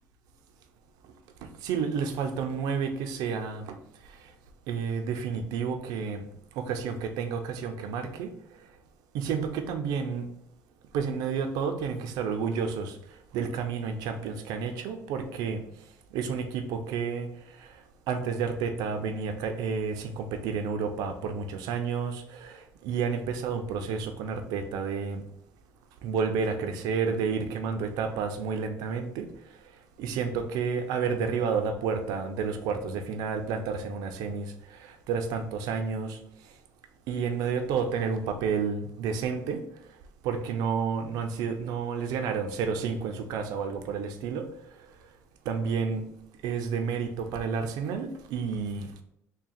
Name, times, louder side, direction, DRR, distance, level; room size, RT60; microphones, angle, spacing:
voice 1, 1.4-3.8 4.7-6.3 6.6-8.3 9.1-10.3 10.9-13.0 13.3-15.6 16.1-17.3 17.6-17.7 18.1-25.2 26.0-29.3 30.0-36.2 37.1-39.6 40.2-44.5 45.5-46.1 46.4-48.9, right 6 dB, 75° right, 6 dB, 0.5 m, -30 dB
3.6 x 2.2 x 4.2 m, 0.75 s
cardioid pair, 120°, 7 cm